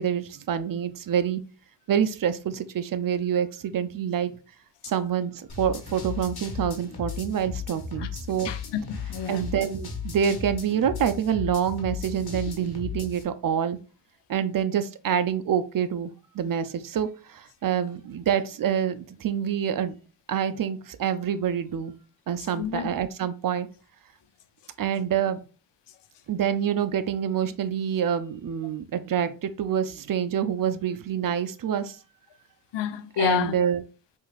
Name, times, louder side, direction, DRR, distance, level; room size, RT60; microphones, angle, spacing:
voice 1, 0.0-1.4 1.9-4.3 4.8-8.5 9.3-13.8 14.3-20.0 20.3-21.9 22.3-23.7 24.8-25.4 26.3-32.0 33.2-33.8, right 8 dB, 50° right, 0.5 m, -27 dB
sound 1, 5.5-13.2, left 5 dB, 55° left, 1.3 m, -36 dB
voice 2, 8.4-9.4 22.6-22.9 32.7-33.6, left 9 dB, 70° left, 0.7 m, -29 dB
4.6 x 2.7 x 2.4 m
supercardioid pair, 40°, 44 cm